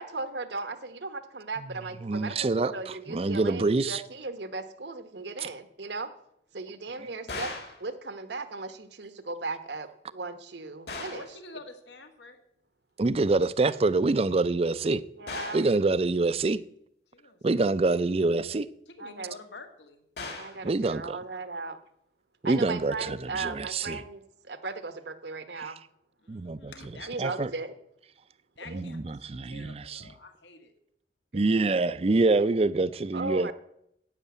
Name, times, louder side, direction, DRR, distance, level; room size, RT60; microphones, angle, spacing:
voice 1, 0.0-6.1 6.5-7.5 7.8-11.2 15.2-15.6 19.0-19.3 20.4-21.8 22.4-25.8 27.1-27.7 28.7-28.9 31.3-31.4 33.1-33.5, right 3 dB, 75° right, 1.1 m, -37 dB
voice 2, 2.0-2.7 3.1-4.0 13.0-15.0 15.5-16.6 17.4-18.7 20.6-21.2 22.4-24.0 26.3-26.7 27.2-27.5 28.7-30.0 31.3-33.5, right 3 dB, 35° right, 0.4 m, -26 dB
sound 1, 7.3-7.8 10.9-11.3 15.3-15.7 20.2-20.6, left 3 dB, 65° left, 2.7 m, -38 dB
voice 3, 11.1-12.4 17.1-17.9 18.9-20.0 26.2-27.1 28.6-29.2 29.5-30.7, left 3 dB, 85° left, 1.9 m, -48 dB
11.0 x 7.8 x 8.4 m
head